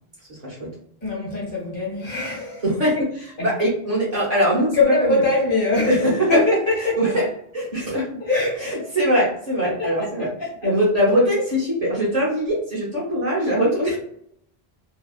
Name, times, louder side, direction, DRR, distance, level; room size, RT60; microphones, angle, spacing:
voice 1, 0.3-0.7 2.6-5.2 5.8-8.2 8.6-10.3 10.6-14.0, equal, 40° right, -6 dB, 1.1 m, -22 dB
voice 2, 1.0-2.6 4.7-6.0 6.3-6.9 8.2-8.9 9.6-9.9, left 2 dB, 55° left, -4 dB, 1.3 m, -22 dB
2.8 x 2.2 x 2.3 m, 0.69 s
omnidirectional pair, 1.1 m